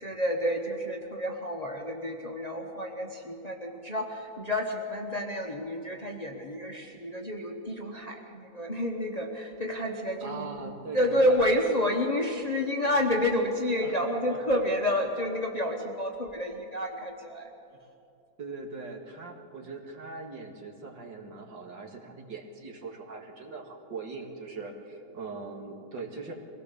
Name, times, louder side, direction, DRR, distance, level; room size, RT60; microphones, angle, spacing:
voice 1, 0.0-17.5, left 1 dB, 25° left, 2 dB, 1.0 m, -29 dB
voice 2, 10.2-11.4 13.8-14.4 18.4-26.6, right 4 dB, 65° right, 1 dB, 2.6 m, -41 dB
23.0 x 17.5 x 6.8 m, 2.7 s
omnidirectional pair, 2.1 m